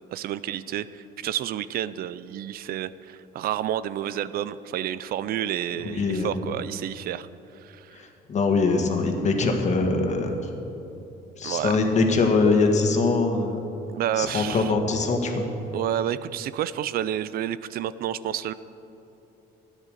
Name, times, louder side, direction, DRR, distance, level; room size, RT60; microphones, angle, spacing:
voice 1, 0.1-7.3 7.5-8.0 11.4-11.7 13.9-14.7 15.7-18.5, right 11 dB, 60° right, 16 dB, 0.5 m, -30 dB
voice 2, 5.9-6.3 7.9-10.5 11.4-13.7 14.2-15.5, left 3 dB, 45° left, 3 dB, 1.8 m, -23 dB
12.5 x 10.0 x 6.7 m, 3.0 s
cardioid pair, 110°, 17 cm